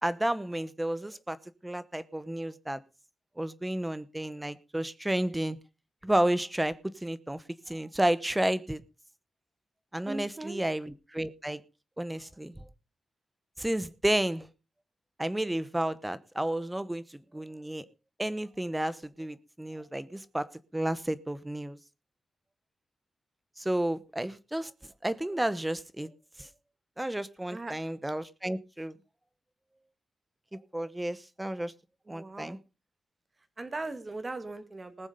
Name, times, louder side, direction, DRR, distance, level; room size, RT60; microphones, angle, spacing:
voice 1, 0.0-1.4 1.6-2.8 3.4-5.6 6.0-8.8 9.9-11.6 12.0-12.6 13.6-14.5 15.2-17.8 18.2-21.8 23.6-24.7 25.0-26.1 26.4-26.5 27.0-28.9 30.5-31.7 32.1-32.6, right 1 dB, 10° right, 0.9 m, -31 dB
voice 2, 10.0-10.6 27.4-27.8 32.1-32.6 33.6-35.1, right 2 dB, 25° right, 1.7 m, -39 dB
19.5 x 7.1 x 5.3 m
wide cardioid pair, 125°, 0 cm